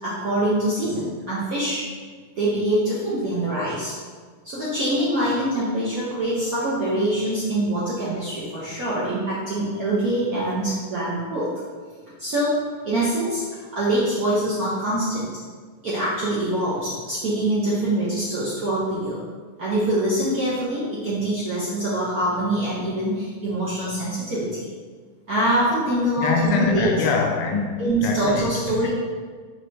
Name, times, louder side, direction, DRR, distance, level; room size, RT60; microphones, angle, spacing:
voice 1, 0.0-1.8 2.4-3.9 4.4-11.5 12.2-15.3 15.8-19.2 19.6-24.7 25.3-26.9 27.8-28.9, right 1 dB, 70° right, -8 dB, 0.8 m, -24 dB
voice 2, 26.2-28.9, left 4 dB, 90° left, 2 dB, 1.6 m, -24 dB
4.8 x 3.2 x 2.7 m, 1.5 s
omnidirectional pair, 2.4 m